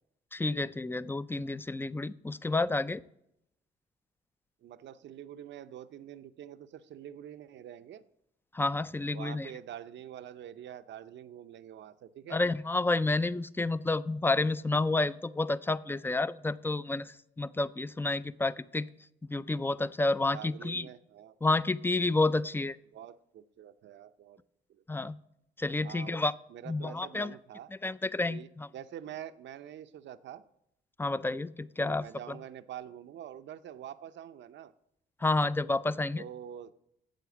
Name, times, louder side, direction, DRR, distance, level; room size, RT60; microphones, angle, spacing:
voice 1, 0.3-3.0 8.5-9.5 12.3-18.9 19.3-20.9 21.4-22.8 24.9-25.2 25.6-26.3 26.7-27.3 27.8-28.7 31.0-32.4 35.2-36.2, left 2 dB, 10° left, 16 dB, 0.4 m, -30 dB
voice 2, 4.6-8.0 9.1-12.4 20.3-21.4 22.9-24.4 24.7-24.8 25.8-26.2 26.5-27.7 28.3-30.4 31.8-34.7 36.2-36.7, right 10 dB, 65° right, 12 dB, 0.6 m, -46 dB
9.2 x 7.7 x 7.0 m, 0.80 s
cardioid pair, 90°, 20 cm